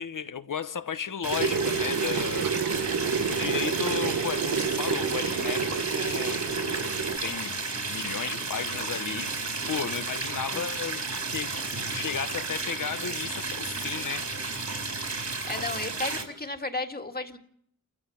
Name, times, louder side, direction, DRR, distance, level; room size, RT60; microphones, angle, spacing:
voice 1, 0.0-2.5 3.3-6.4 6.8-7.6 7.9-9.3 9.7-11.0 11.3-11.6 11.9-14.2, left 7 dB, 75° left, 1.0 m, -34 dB
sound 1, 1.2-16.2, right 3 dB, 60° right, 4.2 m, -33 dB
sound 2, 1.3-7.2, right 6 dB, 85° right, 1.0 m, -29 dB
voice 2, 15.5-17.4, left 2 dB, 30° left, 1.9 m, -33 dB
29.0 x 15.0 x 7.2 m
wide cardioid pair, 80°, 32 cm